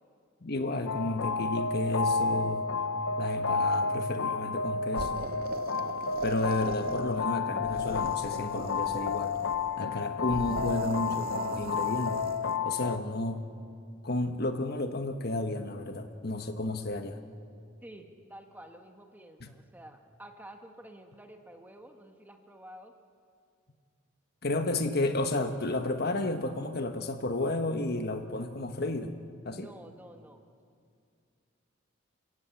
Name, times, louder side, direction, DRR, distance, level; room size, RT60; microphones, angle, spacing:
voice 1, 0.4-2.7 3.2-5.3 6.2-9.3 9.8-12.3 12.6-13.4 14.0-17.2 19.4-19.5 24.4-29.1 29.4-29.7, left 2 dB, 55° left, 7 dB, 1.3 m, -32 dB
sound 1, 0.9-13.0, left 5 dB, 90° left, 0.9 m, -31 dB
sound 2, 4.9-7.3 7.6-9.7 10.3-12.6, right 4 dB, 50° right, 0.8 m, -40 dB
voice 2, 17.8-22.9 29.5-30.4, right 1 dB, 10° right, 4 dB, 1.5 m, -50 dB
29.5 x 16.0 x 8.6 m, 2.3 s
head